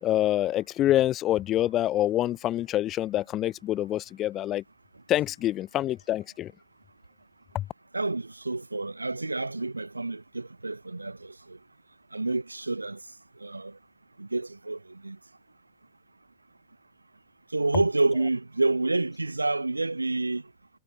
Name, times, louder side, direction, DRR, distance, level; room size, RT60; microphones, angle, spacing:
voice 1, 0.0-4.6 5.1-6.5 7.5-7.6, left 13 dB, 35° left, 1.0 m, -26 dB
voice 2, 7.9-11.6 12.1-13.0 13.4-13.8 14.2-15.2 17.5-20.4, right 2 dB, 80° right, 1.3 m, -29 dB
figure-of-eight pair, 90°, 0 cm